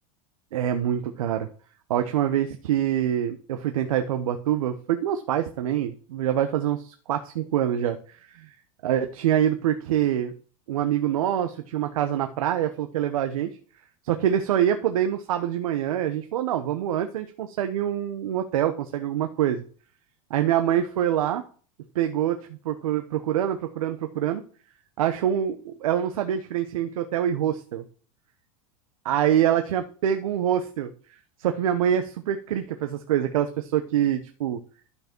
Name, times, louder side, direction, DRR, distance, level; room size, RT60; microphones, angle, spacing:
voice 1, 0.5-1.5 1.9-8.5 8.8-10.3 10.7-13.5 14.0-19.6 20.3-21.4 21.9-22.4 22.6-24.4 25.0-27.8 29.0-30.9 31.4-34.6, right 10 dB, 85° right, 7 dB, 0.9 m, -25 dB
12.0 x 5.4 x 4.5 m, 0.43 s
supercardioid pair, 125°, 17 cm